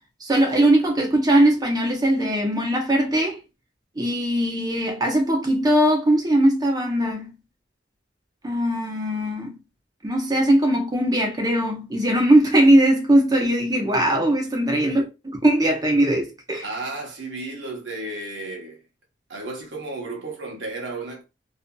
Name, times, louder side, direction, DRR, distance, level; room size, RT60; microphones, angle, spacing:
voice 1, 0.2-3.4 4.0-7.3 8.4-9.5 10.0-16.6, right 1 dB, 20° right, 0.7 m, -20 dB
voice 2, 16.6-18.8 19.3-21.2, right 2 dB, 75° right, 0.9 m, -33 dB
2.6 x 2.5 x 2.2 m
head